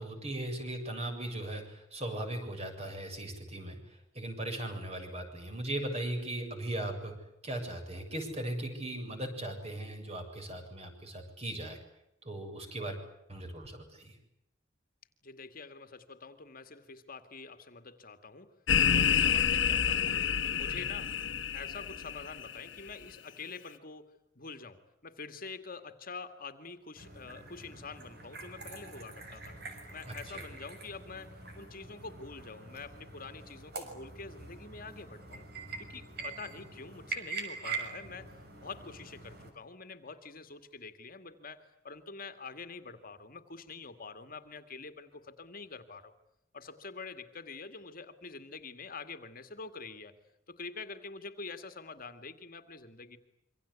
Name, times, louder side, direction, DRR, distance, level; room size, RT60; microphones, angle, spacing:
voice 1, 0.0-11.8 12.2-13.0 13.3-14.2 30.1-30.4, right 1 dB, 35° right, 4 dB, 7.6 m, -38 dB
voice 2, 15.2-18.5 18.9-21.1 21.5-29.6 29.9-35.5 35.8-38.3 38.6-46.1 46.5-50.2 50.5-53.2, left 4 dB, 50° left, 9 dB, 2.1 m, -46 dB
sound 1, 18.7-22.6, left 8 dB, 70° left, 1.6 m, -28 dB
sound 2, 27.0-39.5, right 4 dB, 55° right, 6.2 m, -44 dB
27.0 x 25.0 x 8.4 m, 0.81 s
head